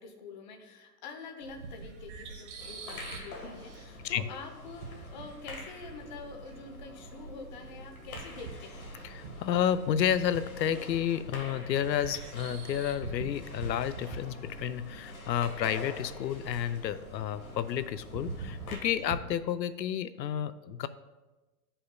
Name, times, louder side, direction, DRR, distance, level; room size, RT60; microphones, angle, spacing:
voice 1, 0.0-8.9 19.0-19.3, left 4 dB, 30° left, 3 dB, 0.7 m, -46 dB
sound 1, 1.4-19.2, right 4 dB, 45° right, 1.1 m, -45 dB
sound 2, 2.6-18.8, left 2 dB, 60° left, 1.6 m, -47 dB
voice 2, 9.0-20.9, left 9 dB, 85° left, 13 dB, 0.6 m, -31 dB
12.5 x 5.5 x 2.2 m, 1.1 s
hypercardioid pair, 150°, 50 cm